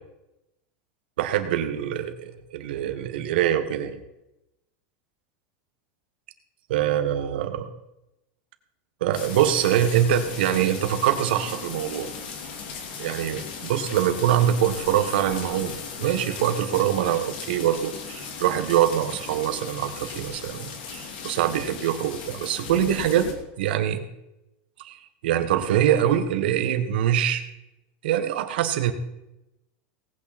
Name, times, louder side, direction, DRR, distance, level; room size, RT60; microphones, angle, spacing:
voice 1, 1.2-4.0 6.7-7.7 9.0-12.1 13.0-23.3 23.6-24.0 24.8-25.0 25.2-27.4 28.0-28.9, right 10 dB, 75° right, 8 dB, 1.4 m, -24 dB
sound 1, 9.1-23.3, left 5 dB, 65° left, 2.6 m, -37 dB
18.5 x 8.6 x 4.3 m, 0.91 s
supercardioid pair, 170°, 5 cm